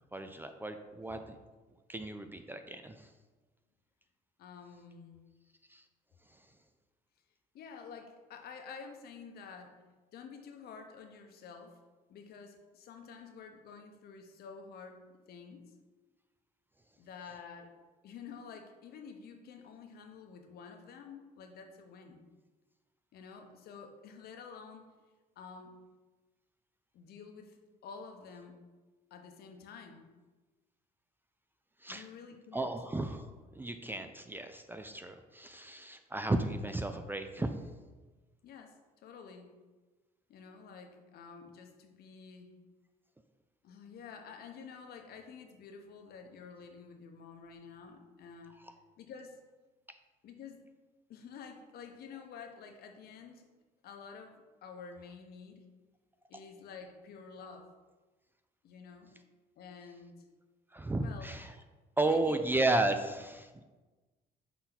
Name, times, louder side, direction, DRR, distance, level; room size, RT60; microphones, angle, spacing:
voice 1, 0.1-1.4 1.9-3.1 5.7-5.8 31.8-32.1 32.5-33.3 33.5-37.6 60.7-61.6 62.0-63.6, right 2 dB, 10° right, 7 dB, 0.3 m, -33 dB
voice 2, 4.4-5.2 7.5-9.8 10.1-11.8 12.1-15.6 17.0-17.7 18.0-22.2 23.1-24.9 25.4-25.8 26.9-28.6 29.1-30.1 31.9-32.7 38.4-39.5 40.3-42.5 43.6-48.6 49.0-49.4 50.2-50.6 51.1-53.5 53.8-55.7 56.3-57.7 58.6-59.1 59.6-60.3 61.0-61.3 62.0-62.4, left 5 dB, 65° left, 4 dB, 0.9 m, -50 dB
6.0 x 4.2 x 4.0 m, 1.3 s
cardioid pair, 110°, 17 cm